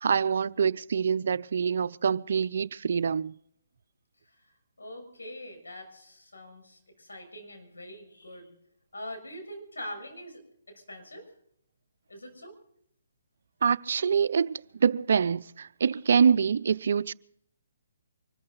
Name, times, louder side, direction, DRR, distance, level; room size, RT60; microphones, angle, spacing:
voice 1, 0.0-3.3 13.6-17.1, right 6 dB, 60° right, 0.5 m, -25 dB
voice 2, 4.8-8.5 8.9-10.4 10.7-11.2 12.1-12.5, equal, 90° left, 6.4 m, -43 dB
24.5 x 14.5 x 4.0 m
hypercardioid pair, 145°, 0 cm